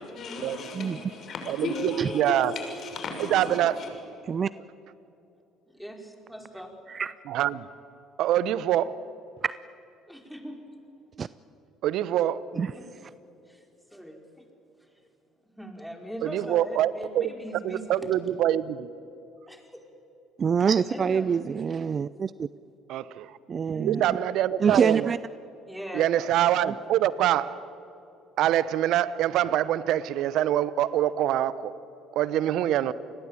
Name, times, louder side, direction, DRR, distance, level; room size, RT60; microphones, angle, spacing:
voice 1, 0.1-3.9, left 3 dB, 50° left, 5.9 m, -35 dB
voice 2, 1.5-2.5 3.3-3.8 7.3-7.7 8.2-9.0 11.8-12.4 16.2-17.3 17.6-18.9 22.9-23.4 23.8-25.1 25.9-27.6 28.4-31.7 32.1-32.9, right 12 dB, 65° right, 0.9 m, -25 dB
voice 3, 5.7-6.7 10.1-10.8 12.5-12.9 13.5-13.6 13.9-14.5 14.8-15.0 15.6-18.1 19.5-19.8 20.9-21.7 23.7-24.0 25.7-26.1 27.2-27.3, equal, ahead, 5.0 m, -41 dB
voice 4, 20.4-22.5 23.5-24.2 24.6-25.2 26.7-26.8, right 6 dB, 40° right, 0.5 m, -25 dB
29.0 x 20.5 x 9.0 m
hypercardioid pair, 60°, 0 cm